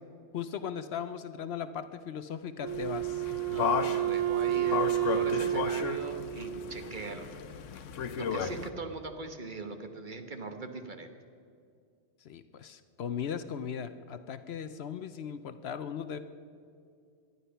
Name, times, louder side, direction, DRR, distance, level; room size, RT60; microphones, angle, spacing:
voice 1, 0.3-3.3 8.4-8.5 12.2-16.2, left 8 dB, 65° left, 11 dB, 0.8 m, -38 dB
Wind instrument woodwind instrument, 2.6-7.1, right 12 dB, 85° right, 1.1 m, -31 dB
sound 1, 2.7-8.7, left 7 dB, 85° left, 1.1 m, -35 dB
voice 2, 3.5-7.3 8.2-11.1, right 3 dB, 45° right, 6 dB, 1.2 m, -41 dB
19.0 x 11.5 x 5.7 m, 2.3 s
omnidirectional pair, 1.2 m